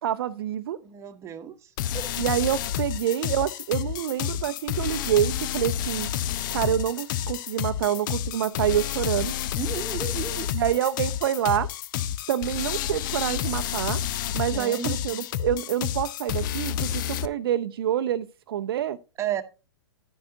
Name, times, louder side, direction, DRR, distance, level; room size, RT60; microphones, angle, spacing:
voice 1, 0.0-0.8 2.2-6.1 6.5-9.3 10.5-11.7 12.3-14.0 14.3-19.0, right 11 dB, 60° right, 0.6 m, -27 dB
voice 2, 0.8-2.2 9.5-10.5 14.5-15.2 19.2-19.4, right 9 dB, 20° right, 1.1 m, -33 dB
sound 1, 1.8-17.3, left 11 dB, 45° left, 0.6 m, -30 dB
11.0 x 9.1 x 2.7 m
figure-of-eight pair, 115°, 14 cm